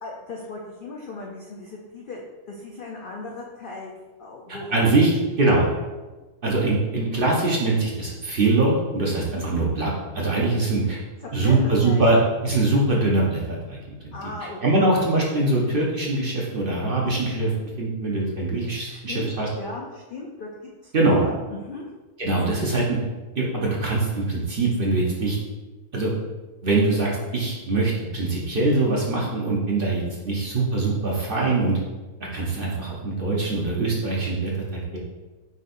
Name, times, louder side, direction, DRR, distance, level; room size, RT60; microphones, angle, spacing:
voice 1, 0.0-3.9 4.2-4.9 5.3-5.5 11.2-11.6 11.8-12.0 14.1-14.9 18.6-21.9, left 3 dB, 75° left, -1 dB, 0.4 m, -37 dB
voice 2, 4.5-5.1 5.4-5.7 6.4-11.0 11.3-13.8 14.0-14.1 14.6-17.5 17.8-19.5 20.9-21.2 22.2-23.0 23.4-25.4 25.9-26.1 26.6-31.8 32.3-35.0, right 2 dB, 50° right, -3 dB, 0.7 m, -23 dB
5.4 x 3.9 x 2.5 m, 1.2 s
omnidirectional pair, 1.6 m